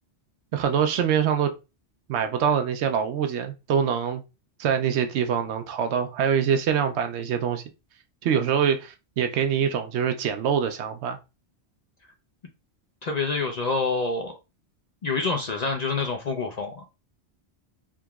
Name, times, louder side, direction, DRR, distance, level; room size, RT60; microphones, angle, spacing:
voice 1, 0.5-1.5 2.1-4.2 4.6-7.6 8.2-11.2, right 8 dB, 75° right, 0.8 m, -24 dB
voice 2, 13.0-14.3 15.0-16.8, left 4 dB, 50° left, 0.5 m, -27 dB
3.6 x 2.9 x 2.3 m
omnidirectional pair, 1.1 m